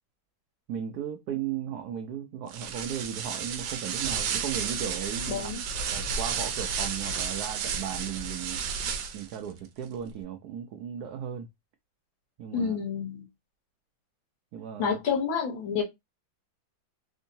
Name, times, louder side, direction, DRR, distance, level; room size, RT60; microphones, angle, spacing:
voice 1, 0.7-8.6 9.1-11.5 12.4-12.7 14.5-15.0, right 9 dB, 90° right, 0.8 m, -36 dB
sound 1, 2.5-9.4, right 6 dB, 75° right, 1.3 m, -32 dB
voice 2, 5.3-5.6 12.5-13.3 14.8-15.8, left 6 dB, 70° left, 1.7 m, -29 dB
3.7 x 2.7 x 2.6 m
omnidirectional pair, 2.2 m